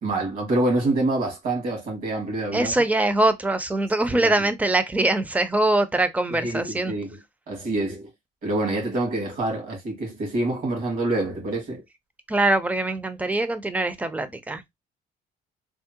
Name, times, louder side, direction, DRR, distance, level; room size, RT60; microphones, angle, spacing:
voice 1, 0.0-2.7 4.1-4.3 6.3-7.2 7.5-8.1 8.4-11.8, right 2 dB, 60° right, 2.0 m, -26 dB
voice 2, 2.5-6.9 12.3-14.6, right 2 dB, 10° right, 0.4 m, -23 dB
3.5 x 2.0 x 2.7 m
cardioid pair, 110°, 17 cm